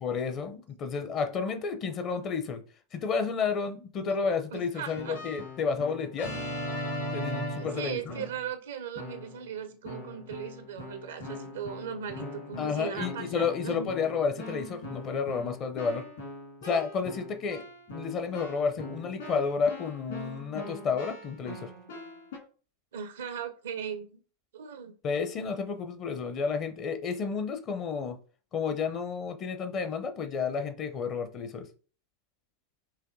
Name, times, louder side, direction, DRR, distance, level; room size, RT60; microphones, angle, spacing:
voice 1, 0.0-2.6 2.9-6.3 7.1-8.2 12.6-16.0 16.6-17.6 17.9-21.7 25.0-28.2 28.5-31.7, left 5 dB, 30° left, 0.6 m, -31 dB
voice 2, 4.0-5.2 7.6-13.9 22.9-24.2 24.5-24.9, right 8 dB, 60° right, 0.5 m, -38 dB
Keyboard (musical), 4.8-8.5 9.0-9.5 9.8-22.4, left 1 dB, 60° left, 1.8 m, -40 dB
5.7 x 2.7 x 2.6 m
figure-of-eight pair, 90°, 0 cm